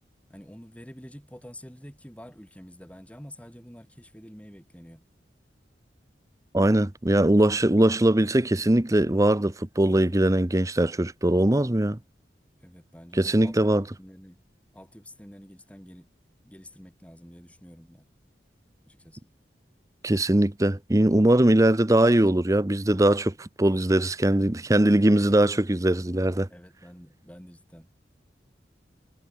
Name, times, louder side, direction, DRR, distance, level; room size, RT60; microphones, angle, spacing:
voice 1, 0.3-5.0 12.6-14.4 14.7-16.1 16.4-18.1 18.8-19.3 24.2-24.4 26.5-27.9, equal, 10° left, 7.1 m, -48 dB
voice 2, 6.5-12.0 13.2-13.8 20.0-26.5, right 1 dB, 20° right, 0.8 m, -21 dB
head